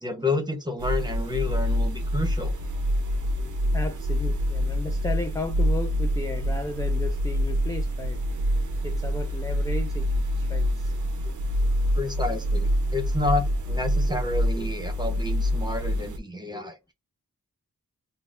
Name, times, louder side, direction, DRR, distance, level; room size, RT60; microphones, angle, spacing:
voice 1, 0.0-2.5 12.0-16.8, left 2 dB, 10° right, 0.9 m, -30 dB
sound 1, 0.8-16.2, equal, 55° right, 0.6 m, -26 dB
voice 2, 3.1-8.2 8.8-10.9 11.2-11.3 14.1-14.2 14.6-14.7 16.5-16.7, left 2 dB, 10° left, 0.3 m, -35 dB
3.8 x 2.1 x 2.5 m
wide cardioid pair, 90°, 36 cm